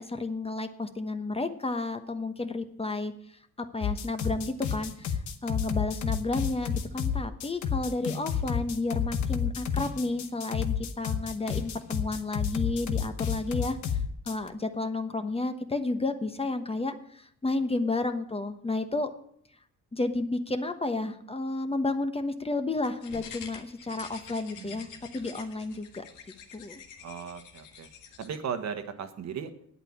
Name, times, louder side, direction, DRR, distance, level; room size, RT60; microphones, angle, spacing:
voice 1, 0.0-3.1 3.6-14.0 14.2-19.1 19.9-24.9 25.1-26.0 26.5-26.8, left 2 dB, 20° left, 8 dB, 1.1 m, -31 dB
sound 1, 3.8-14.5, left 7 dB, 70° left, 1.2 m, -30 dB
sound 2, 22.8-28.4, left 7 dB, 90° left, 1.8 m, -47 dB
voice 2, 24.6-24.9 27.0-27.9 28.2-29.5, right 7 dB, 65° right, 7 dB, 1.5 m, -37 dB
9.2 x 8.3 x 8.7 m, 0.67 s
cardioid pair, 90°, 30 cm